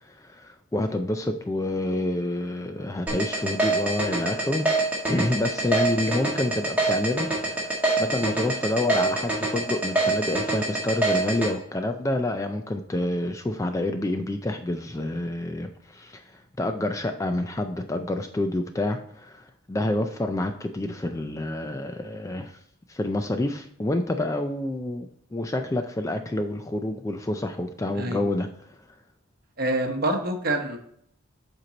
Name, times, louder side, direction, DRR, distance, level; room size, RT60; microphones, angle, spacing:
voice 1, 0.0-4.7 5.1-22.6 22.9-28.5, left 1 dB, 15° left, 7 dB, 0.3 m, -28 dB
sound 1, 3.1-11.5, right 2 dB, 5° right, 1.7 m, -24 dB
voice 2, 29.6-30.8, right 1 dB, 45° right, 4 dB, 1.0 m, -26 dB
7.8 x 4.5 x 3.9 m, 0.70 s
head